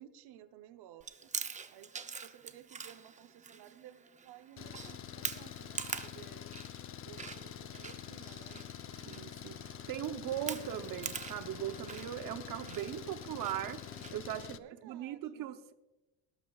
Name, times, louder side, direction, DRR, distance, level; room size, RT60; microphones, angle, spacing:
voice 1, 0.0-1.3 1.7-1.9 2.2-6.5 7.0-8.6 14.3-15.5, right 12 dB, 90° right, 11 dB, 0.9 m, -55 dB
Chewing mastication, 1.0-14.1, right 5 dB, 20° right, 0.6 m, -45 dB
Engine, 4.6-14.6, left 10 dB, 35° left, 0.5 m, -46 dB
voice 2, 9.0-9.6 9.9-13.8 14.1-14.6 14.8-15.7, right 11 dB, 60° right, 9 dB, 0.8 m, -39 dB
19.0 x 12.0 x 2.4 m, 1.0 s
cardioid pair, 140°, 38 cm